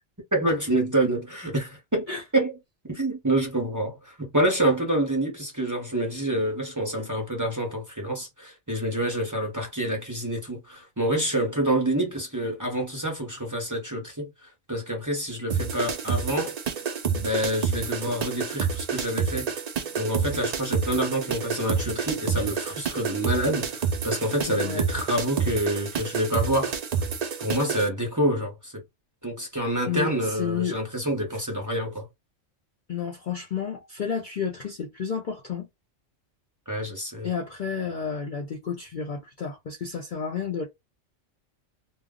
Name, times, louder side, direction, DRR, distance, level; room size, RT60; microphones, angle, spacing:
voice 1, 0.3-2.1 2.3-2.5 2.9-14.3 14.7-16.5 17.1-19.5 20.0-26.8 27.4-28.8 29.2-32.1 36.7-37.3, right 1 dB, 15° right, 0.7 m, -27 dB
sound 1, 15.5-27.9, right 6 dB, 85° right, 0.3 m, -29 dB
voice 2, 24.5-24.8 29.9-30.8 32.9-35.7 37.2-40.7, left 7 dB, 50° left, 0.6 m, -31 dB
2.4 x 2.0 x 3.6 m
omnidirectional pair, 1.3 m